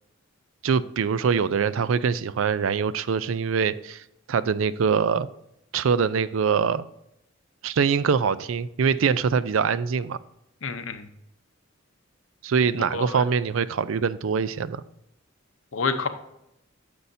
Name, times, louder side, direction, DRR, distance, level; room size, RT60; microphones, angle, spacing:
voice 1, 0.6-4.0 4.3-5.3 5.7-6.8 7.6-10.2 12.4-14.8, right 6 dB, 75° right, 0.4 m, -23 dB
voice 2, 10.6-11.1 12.9-13.2 15.7-16.1, left 4 dB, 75° left, 0.8 m, -28 dB
9.8 x 6.9 x 2.7 m
head